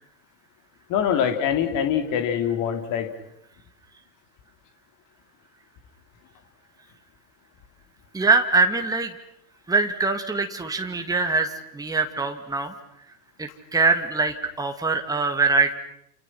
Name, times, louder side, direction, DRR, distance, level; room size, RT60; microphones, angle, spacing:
voice 1, 0.9-3.1, left 8 dB, 40° left, 7 dB, 3.6 m, -24 dB
voice 2, 8.1-9.1 9.7-12.7 13.4-15.7, right 4 dB, 10° right, 5 dB, 2.3 m, -23 dB
29.0 x 28.5 x 6.0 m, 0.78 s
figure-of-eight pair, 90°, 47 cm